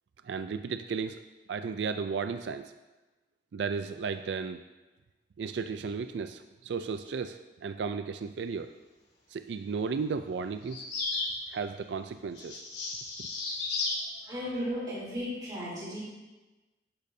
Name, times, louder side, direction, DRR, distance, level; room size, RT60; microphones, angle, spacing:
voice 1, 0.2-1.2 1.5-2.7 3.5-4.6 5.4-8.7 9.3-10.8 11.5-12.6 13.2-13.3, right 5 dB, 80° right, 9 dB, 0.4 m, -34 dB
sound 1, 10.7-11.4 12.3-14.0, left 3 dB, 85° left, 3.5 m, -33 dB
voice 2, 14.2-16.0, equal, 25° right, -11 dB, 3.5 m, -35 dB
10.5 x 10.5 x 2.7 m, 1.1 s
head